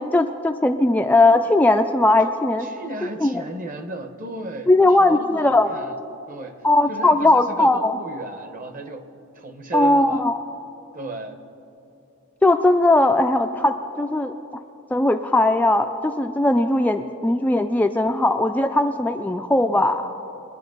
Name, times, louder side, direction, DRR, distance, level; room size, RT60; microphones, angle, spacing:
voice 1, 0.0-2.7 3.2-3.4 4.7-5.8 6.6-8.0 9.7-10.4 12.4-14.3 14.9-20.1, left 2 dB, 10° left, 5 dB, 0.3 m, -19 dB
voice 2, 2.2-6.0 6.3-9.1 9.3-10.2 10.9-11.4, right 3 dB, 40° right, 7 dB, 1.0 m, -35 dB
23.0 x 10.5 x 3.9 m, 2.8 s
head